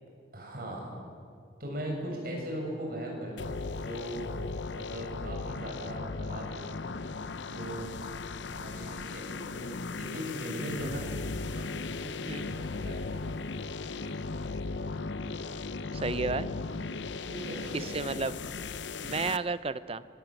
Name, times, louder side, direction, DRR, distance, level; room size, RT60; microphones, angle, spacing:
voice 1, 0.3-1.0 1.6-4.3 4.7-6.8 7.5-8.0 8.5-11.1 11.5-13.3 17.3-17.9, right 1 dB, 50° right, -1 dB, 7.3 m, -39 dB
sound 1, 3.4-19.4, left 3 dB, 80° left, 0.8 m, -37 dB
voice 2, 15.9-16.5 17.7-18.3 19.0-20.0, right 4 dB, 30° right, 15 dB, 0.6 m, -32 dB
25.0 x 20.5 x 9.0 m, 2.4 s
head